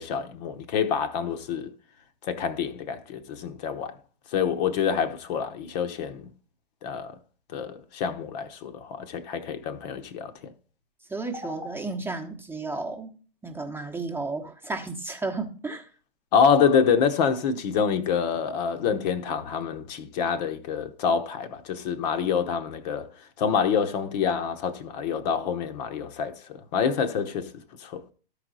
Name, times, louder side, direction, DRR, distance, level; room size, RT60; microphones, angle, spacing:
voice 1, 0.0-1.7 2.2-3.9 4.3-6.3 6.8-7.2 7.5-10.5 16.3-23.1 23.4-27.5 27.8-28.0, left 7 dB, 45° left, 1.0 m, -26 dB
voice 2, 11.1-13.1 13.4-15.9, right 3 dB, 5° right, 1.0 m, -33 dB
13.0 x 4.9 x 3.9 m
hypercardioid pair, 115°, 29 cm